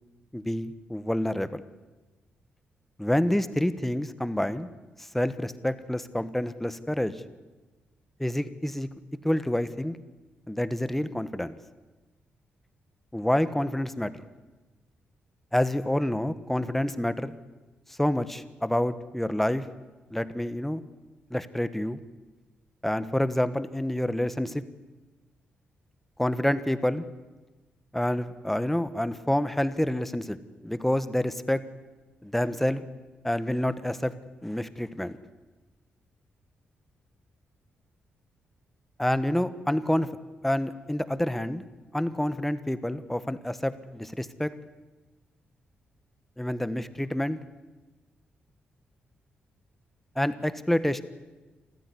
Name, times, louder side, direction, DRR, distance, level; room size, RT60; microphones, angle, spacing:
voice 1, 0.3-1.6 3.0-4.7 5.1-7.2 8.2-8.9 9.2-10.0 10.5-11.6 13.1-14.1 15.5-17.3 17.9-19.7 20.1-20.8 21.3-22.0 22.8-24.6 26.2-27.0 27.9-30.4 30.6-31.6 32.2-32.8 33.2-34.1 34.4-35.2 39.0-40.1 40.4-41.6 41.9-44.5 46.4-47.4 50.1-51.0, left 1 dB, 5° left, 13 dB, 1.2 m, -28 dB
27.5 x 15.0 x 9.8 m, 1.2 s
cardioid pair, 105°, 4 cm